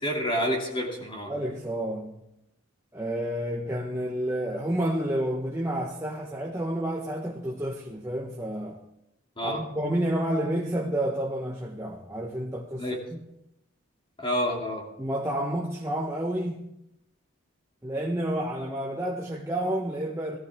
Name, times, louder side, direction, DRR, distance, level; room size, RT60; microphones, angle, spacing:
voice 1, 0.0-1.3 9.4-9.6 12.8-13.0 14.2-14.9, equal, 25° left, 2.8 m, -28 dB
voice 2, 1.3-2.3 2.9-8.8 9.4-13.2 15.0-16.7 17.8-20.4, right 1 dB, 15° right, 1.0 m, -30 dB
17.5 x 14.0 x 3.6 m
head